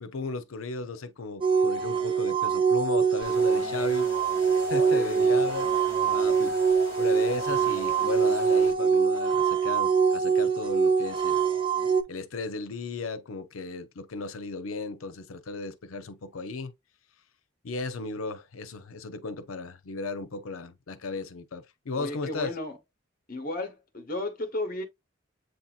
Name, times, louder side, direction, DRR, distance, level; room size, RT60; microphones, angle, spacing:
voice 1, 0.0-4.1 4.6-5.7 6.1-6.6 7.0-11.4 12.1-16.7 17.6-22.5, left 3 dB, 85° left, 0.6 m, -35 dB
sound 1, 1.4-12.0, right 6 dB, 25° right, 0.3 m, -24 dB
sound 2, 3.2-8.7, left 3 dB, 15° left, 1.0 m, -43 dB
voice 2, 4.8-5.4 22.0-22.8 23.3-24.8, left 2 dB, 45° left, 1.0 m, -34 dB
7.8 x 2.8 x 2.4 m
head